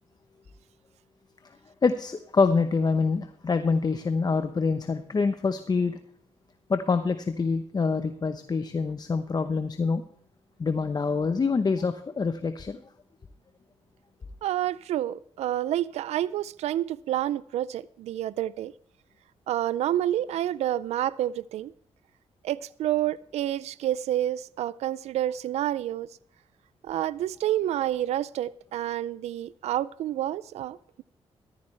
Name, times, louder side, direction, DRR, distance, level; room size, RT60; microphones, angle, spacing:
voice 1, 1.8-6.0 6.7-10.0 10.6-12.8, left 4 dB, 40° left, 0.9 m, -26 dB
voice 2, 14.4-18.7 19.5-21.7 22.4-26.1 26.8-31.0, right 12 dB, 85° right, 0.4 m, -29 dB
14.0 x 13.5 x 3.3 m
cardioid pair, 70°, 11 cm